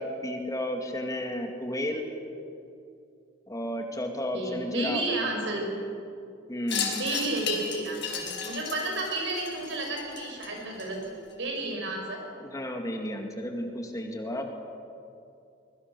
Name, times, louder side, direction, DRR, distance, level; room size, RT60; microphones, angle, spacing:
voice 1, 0.0-2.1 3.5-5.0 6.5-7.0 12.4-14.5, left 1 dB, 20° left, 3 dB, 2.1 m, -32 dB
voice 2, 4.3-5.7 6.8-12.2, right 2 dB, 65° right, 1 dB, 6.4 m, -32 dB
Wind chime, 6.7-11.3, left 6 dB, 65° left, 4.7 m, -35 dB
25.0 x 22.5 x 6.8 m, 2.5 s
head